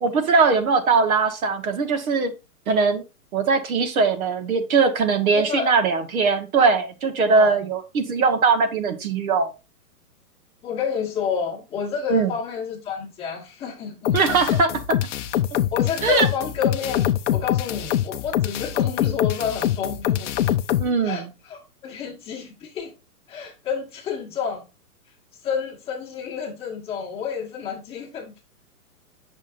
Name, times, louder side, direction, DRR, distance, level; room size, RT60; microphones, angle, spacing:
voice 1, 0.0-2.3 2.7-3.0 3.3-9.5 12.1-12.3 14.1-14.7 16.0-16.3 20.8-21.3, right 4 dB, 65° right, 1.6 m, -20 dB
voice 2, 5.3-5.7 7.3-7.6 10.6-14.4 15.7-20.3 21.0-22.9 23.3-24.7 25.4-28.4, left 7 dB, 10° left, 1.3 m, -29 dB
sound 1, 14.0-20.9, left 12 dB, 50° left, 0.5 m, -24 dB
7.2 x 6.2 x 2.6 m
hypercardioid pair, 160°, 46 cm